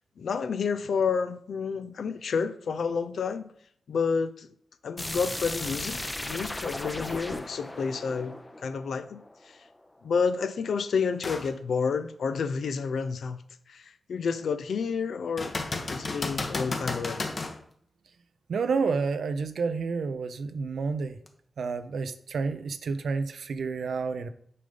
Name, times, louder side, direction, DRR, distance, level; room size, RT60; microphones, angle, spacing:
voice 1, 0.2-3.5 3.9-4.5 4.8-9.7 10.0-13.4 13.7-15.6 15.9-17.2, left 5 dB, 85° left, 0.5 m, -30 dB
sound 1, 5.0-9.7, left 1 dB, 20° left, 0.6 m, -36 dB
sound 2, 11.2-11.5 12.1-12.2 15.4-17.6 21.3-21.4, left 3 dB, 50° left, 1.1 m, -32 dB
voice 2, 18.5-21.1 21.6-24.3, right 4 dB, 85° right, 0.6 m, -29 dB
6.7 x 5.1 x 5.3 m
cardioid pair, 80°, 0 cm